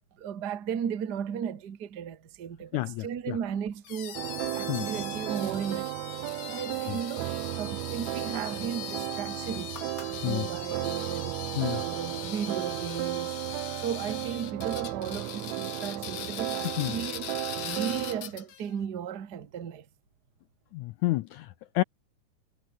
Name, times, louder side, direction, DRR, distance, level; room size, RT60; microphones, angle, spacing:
voice 1, 0.2-4.2 4.5-5.9 6.5-9.8 10.1-13.3 13.8-19.8, right 8 dB, 40° right, 1.5 m, -35 dB
voice 2, 2.7-3.4 4.7-4.8 6.9-7.0 10.2-10.5 11.6-11.8 16.8-16.9 20.7-21.8, left 18 dB, 80° left, 1.8 m, -30 dB
sound 1, 3.8-18.7, left 10 dB, 60° left, 2.6 m, -41 dB
sound 2, 4.1-18.2, right 17 dB, 90° right, 1.6 m, -34 dB
sound 3, 9.3-11.1 12.0-12.1, left 4 dB, 30° left, 2.5 m, -51 dB
omnidirectional pair, 4.0 m